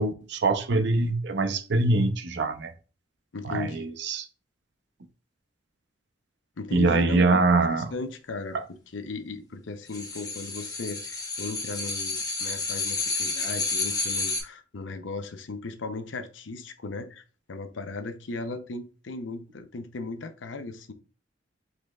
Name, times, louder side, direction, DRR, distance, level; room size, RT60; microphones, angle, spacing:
voice 1, 0.0-2.7 3.4-4.3 6.7-7.9, right 3 dB, 65° right, 0.6 m, -23 dB
voice 2, 3.3-3.9 6.6-20.9, left 3 dB, 80° left, 0.6 m, -37 dB
sound 1, 9.9-14.4, left 3 dB, 20° left, 1.0 m, -30 dB
5.1 x 3.9 x 2.3 m
head